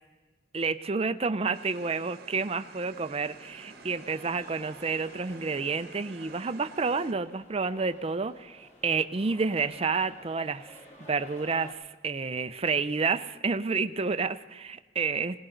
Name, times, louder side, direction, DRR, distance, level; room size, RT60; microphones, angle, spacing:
voice 1, 0.5-10.8 11.1-15.4, right 4 dB, 30° right, 11 dB, 0.5 m, -30 dB
sound 1, 1.5-7.1, right 4 dB, 60° right, 1.1 m, -50 dB
sound 2, 2.8-11.7, left 1 dB, 40° left, 2.3 m, -53 dB
19.5 x 18.0 x 3.9 m, 1.2 s
head